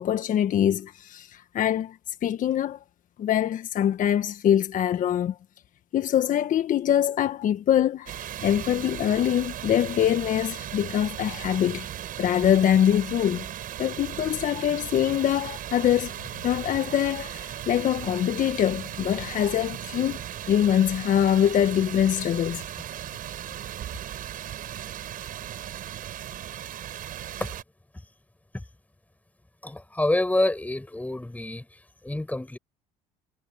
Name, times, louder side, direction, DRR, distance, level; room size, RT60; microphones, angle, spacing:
voice 1, 0.0-2.8 3.2-5.4 5.9-11.9 12.2-13.5 13.8-20.2 20.5-22.6, left 10 dB, 50° left, 1.5 m, -24 dB
sound 1, 8.1-27.6, right 11 dB, 55° right, 6.4 m, -37 dB
voice 2, 29.6-32.6, left 1 dB, 10° left, 7.9 m, -27 dB
supercardioid pair, 80°, 17 cm